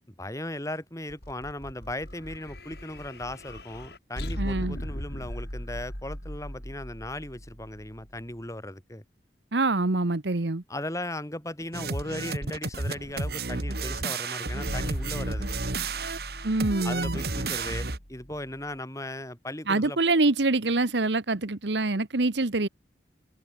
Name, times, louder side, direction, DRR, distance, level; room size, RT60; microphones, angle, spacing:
voice 1, 0.2-9.0 10.7-15.5 16.8-20.0, left 1 dB, 15° left, 5.2 m, -37 dB
sound 1, 1.1-8.4 14.6-18.7, equal, 60° left, 6.7 m, -39 dB
voice 2, 4.4-4.8 9.5-10.6 16.4-17.2 19.7-22.7, right 2 dB, 75° right, 1.2 m, -25 dB
sound 2, 11.7-18.0, right 3 dB, 55° right, 2.3 m, -32 dB
head